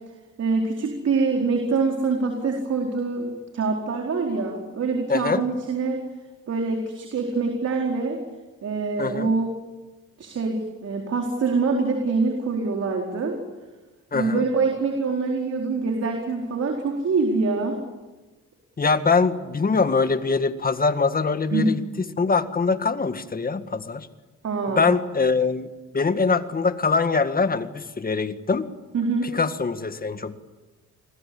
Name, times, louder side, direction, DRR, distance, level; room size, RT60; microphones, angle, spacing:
voice 1, 0.4-6.0 6.5-8.2 8.6-9.5 10.2-13.4 14.1-17.8 21.5-21.7 24.4-25.0 28.9-29.3, right 4 dB, 55° right, 1 dB, 4.4 m, -25 dB
voice 2, 5.1-5.4 9.0-9.3 14.1-14.4 18.8-21.8 22.2-24.1 24.7-25.7 25.9-28.7 29.3-30.4, left 4 dB, 30° left, 10 dB, 1.9 m, -23 dB
28.5 x 20.5 x 8.7 m, 1.2 s
cardioid pair, 90°, 30 cm